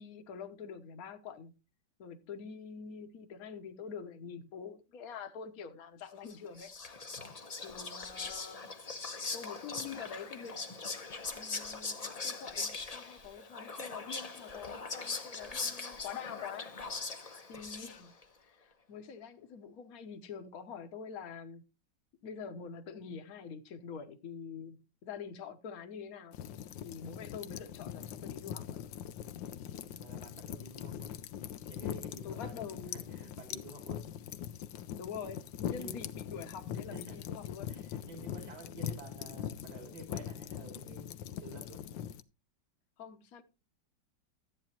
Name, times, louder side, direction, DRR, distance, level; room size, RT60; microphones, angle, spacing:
voice 1, 0.0-1.5 2.0-6.7 7.6-8.6 9.3-10.6 11.3-16.7 17.5-18.1 18.5-21.6 22.2-26.4 26.8-28.9 32.2-33.0 35.0-37.7 43.0-43.4, left 6 dB, 55° left, 1.4 m, -45 dB
Whispering, 6.3-18.2, left 4 dB, 30° left, 0.7 m, -41 dB
sound 1, 26.3-42.2, left 10 dB, 80° left, 1.4 m, -42 dB
voice 2, 29.7-31.2 31.7-34.2 35.7-36.1 36.9-37.2 37.7-41.8, right 2 dB, 60° right, 3.4 m, -51 dB
13.5 x 8.7 x 2.9 m
omnidirectional pair, 2.0 m